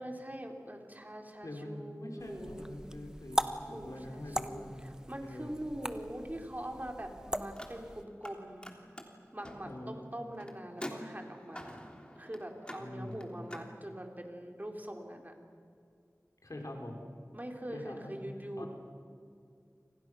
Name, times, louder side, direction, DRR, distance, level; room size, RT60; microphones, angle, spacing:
voice 1, 0.0-2.8 3.7-8.7 9.3-11.8 12.2-15.3 17.3-18.7, right 1 dB, 30° right, 3 dB, 3.6 m, -43 dB
voice 2, 1.4-4.8 5.2-5.6 9.6-9.9 12.8-13.2 16.4-17.0 17.7-18.1 18.6-18.7, left 1 dB, 75° left, 2 dB, 4.2 m, -44 dB
sound 1, 2.2-8.0, equal, 10° right, 1.3 m, -39 dB
Car, 7.5-8.3 8.6-13.7, equal, 15° left, 3.3 m, -47 dB
29.5 x 26.0 x 6.3 m, 2.3 s
wide cardioid pair, 45°, 6 cm